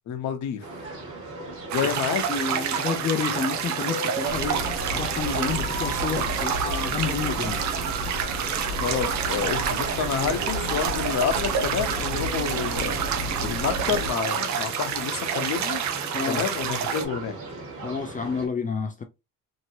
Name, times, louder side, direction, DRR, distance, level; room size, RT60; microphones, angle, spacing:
voice 1, 0.1-0.6 1.7-2.2 8.8-13.0 13.4-15.8 16.3-17.4, left 7 dB, 60° left, 0.8 m, -29 dB
sound 1, 0.6-18.5, right 3 dB, 45° right, 1.5 m, -37 dB
sound 2, 1.7-17.0, right 8 dB, 60° right, 0.6 m, -29 dB
voice 2, 1.8-4.7 4.9-7.6 16.1-16.4 17.8-19.0, left 5 dB, 25° left, 0.4 m, -30 dB
sound 3, 4.3-14.1, equal, 80° right, 1.1 m, -33 dB
2.9 x 2.8 x 2.7 m
cardioid pair, 120°, 32 cm